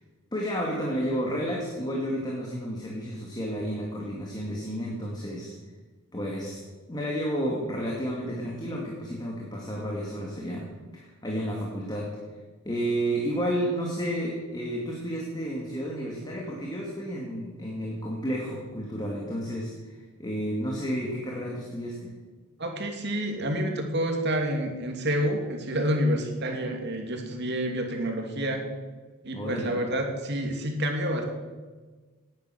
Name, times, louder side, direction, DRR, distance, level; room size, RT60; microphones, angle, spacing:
voice 1, 0.3-5.5 6.1-6.6 6.9-10.6 10.9-12.1 12.6-22.1 29.3-29.8, equal, 20° left, -2 dB, 2.4 m, -31 dB
voice 2, 22.6-28.6 29.2-31.2, equal, 50° right, 3 dB, 2.7 m, -28 dB
18.5 x 10.0 x 6.4 m, 1.4 s
head